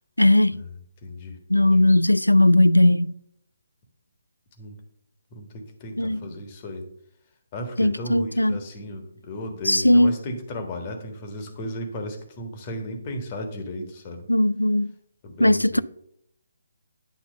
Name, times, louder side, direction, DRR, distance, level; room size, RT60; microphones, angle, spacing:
voice 1, 0.2-0.6 1.5-3.1 6.0-6.3 7.8-8.6 9.7-10.2 14.3-14.9 15.4-15.8, left 1 dB, 85° left, 0.3 m, -18 dB
voice 2, 1.0-1.8 4.6-4.8 5.3-6.8 7.5-14.3 15.2-15.8, left 1 dB, 30° left, 1.5 m, -35 dB
9.2 x 4.1 x 6.5 m
figure-of-eight pair, 140°, 0 cm